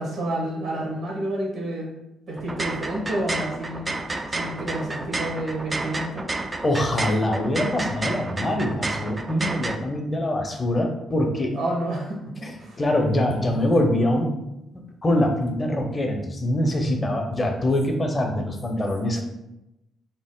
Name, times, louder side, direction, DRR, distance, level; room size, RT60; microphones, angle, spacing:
voice 1, 0.0-1.9 2.3-3.8 4.3-6.2 11.5-12.2 12.6-12.8, right 1 dB, 65° right, -2 dB, 1.1 m, -29 dB
sound 1, 2.4-9.8, right 2 dB, 25° right, 0.3 m, -30 dB
voice 2, 6.6-11.5 12.4-12.5 12.8-14.4 15.0-19.2, left 1 dB, 30° left, 3 dB, 0.6 m, -24 dB
2.8 x 2.0 x 3.6 m, 0.89 s
hypercardioid pair, 45°, 0 cm